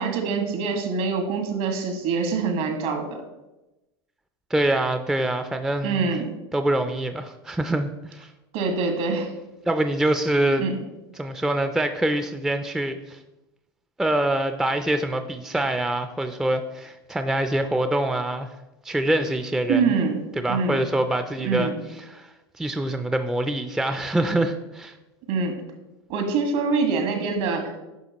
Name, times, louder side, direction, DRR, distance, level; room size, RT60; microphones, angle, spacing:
voice 1, 0.0-3.2 5.8-6.3 8.5-9.3 10.6-10.8 19.7-20.2 20.5-20.8 21.4-21.8 25.3-25.5 26.1-27.8, right 4 dB, 65° right, 4 dB, 1.6 m, -25 dB
voice 2, 4.5-6.0 6.5-8.3 9.7-10.7 11.2-13.2 14.0-18.5 18.8-19.8 20.4-21.7 22.1-22.3 22.6-25.0, right 1 dB, 5° right, 8 dB, 0.4 m, -25 dB
9.3 x 5.9 x 2.9 m, 1.0 s
hypercardioid pair, 100°, 14 cm